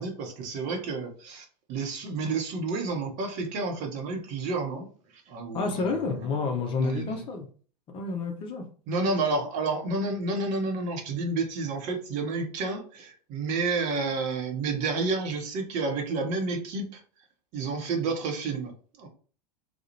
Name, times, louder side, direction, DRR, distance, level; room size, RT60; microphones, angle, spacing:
voice 1, 0.0-4.9 5.3-6.4 6.8-7.2 8.9-17.0 17.5-19.1, right 3 dB, 35° right, 3 dB, 0.7 m, -30 dB
voice 2, 5.5-7.5 7.9-8.6, left 4 dB, 25° left, 3 dB, 0.5 m, -29 dB
2.3 x 2.1 x 2.8 m, 0.41 s
figure-of-eight pair, 90°, 21 cm